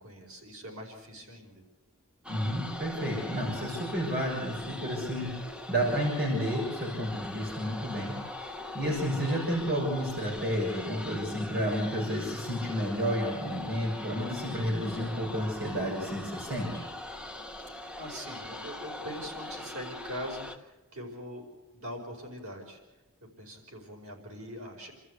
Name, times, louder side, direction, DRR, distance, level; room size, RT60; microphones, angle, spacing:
voice 1, 0.0-1.6 17.5-21.4 21.7-22.8 23.2-24.9, equal, 85° right, 1 dB, 5.1 m, -42 dB
sound 1, 2.2-20.6, left 1 dB, 5° right, 1.3 m, -41 dB
voice 2, 2.3-5.3 5.7-8.2 8.4-16.8, equal, 45° right, -3 dB, 6.9 m, -31 dB
29.0 x 14.0 x 8.2 m, 1.0 s
head